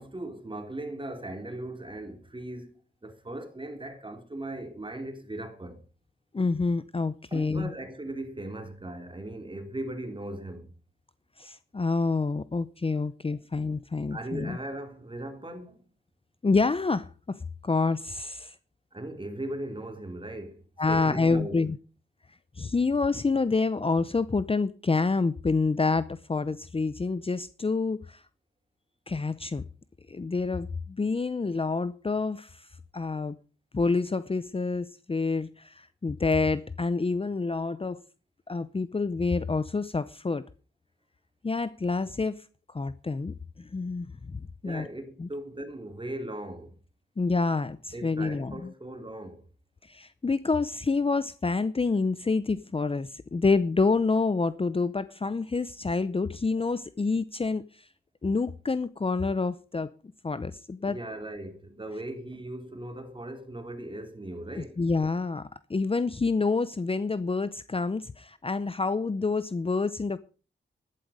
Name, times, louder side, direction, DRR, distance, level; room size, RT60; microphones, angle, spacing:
voice 1, 0.0-5.8 7.3-10.7 13.5-13.6 14.1-15.9 18.9-20.6 20.9-21.6 44.6-46.8 47.9-49.5 60.8-64.8, right 1 dB, 25° right, 3.2 m, -38 dB
voice 2, 6.3-7.7 11.4-14.6 16.4-18.5 20.8-21.8 22.6-28.2 29.1-29.6 30.1-32.7 32.9-33.4 33.7-38.0 38.5-40.4 41.4-42.4 42.7-44.9 45.2-45.3 47.2-48.7 49.9-57.8 58.2-59.9 60.2-61.0 64.6-70.2, left 4 dB, 30° left, 0.7 m, -28 dB
12.0 x 12.0 x 5.0 m
cardioid pair, 70°, 20 cm